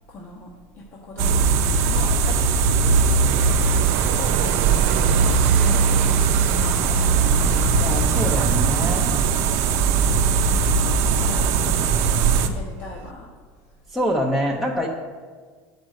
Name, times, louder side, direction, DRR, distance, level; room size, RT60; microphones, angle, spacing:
voice 1, 0.1-0.5 0.8-1.5 1.9-5.0 5.5-7.0 7.5-10.8 11.1-13.3, left 2 dB, 40° left, -2 dB, 1.1 m, -39 dB
sound 1, 1.2-12.5, right 5 dB, 60° right, 0.7 m, -19 dB
sound 2, 3.2-13.1, right 7 dB, 90° right, 0.8 m, -34 dB
voice 2, 7.8-9.1 13.9-14.9, equal, 5° left, -1 dB, 0.7 m, -25 dB
9.0 x 5.2 x 6.4 m, 1.5 s
cardioid pair, 150°, 6 cm